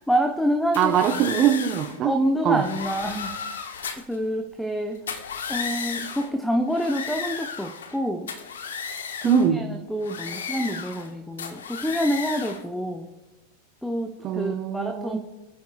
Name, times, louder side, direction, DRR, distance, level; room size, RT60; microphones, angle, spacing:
voice 1, 0.1-1.0 2.0-3.3 4.1-5.0 5.5-8.3 9.2-13.1 13.8-15.2, equal, ahead, 5 dB, 0.9 m, -27 dB
sound 1, 0.7-2.0 2.5-4.2 5.0-6.3 6.7-8.0 8.3-9.5 10.0-11.1 11.4-12.6, left 6 dB, 65° left, 1.0 m, -34 dB
voice 2, 0.8-2.1 2.4-2.6 9.2-9.6 14.2-15.2, right 9 dB, 35° right, 7 dB, 1.0 m, -22 dB
26.5 x 9.5 x 2.4 m, 1.1 s
figure-of-eight pair, 90°, 0 cm